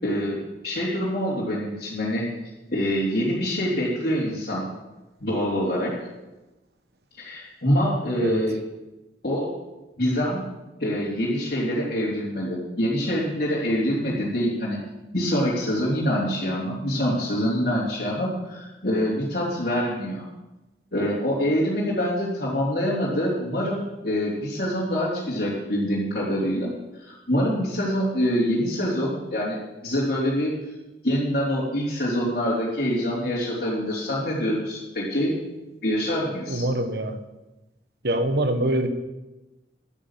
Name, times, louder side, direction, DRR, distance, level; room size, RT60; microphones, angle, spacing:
voice 1, 0.0-2.3 2.7-4.6 5.2-6.0 7.2-8.5 9.2-9.5 10.0-10.5 10.8-14.8 15.1-20.2 20.9-30.5 31.0-35.3 35.8-36.7, equal, 55° left, -8 dB, 3.4 m, -25 dB
voice 2, 8.2-8.5 36.5-37.2 38.0-38.9, right 1 dB, 60° right, 7 dB, 1.3 m, -24 dB
11.5 x 10.5 x 7.5 m, 1.1 s
head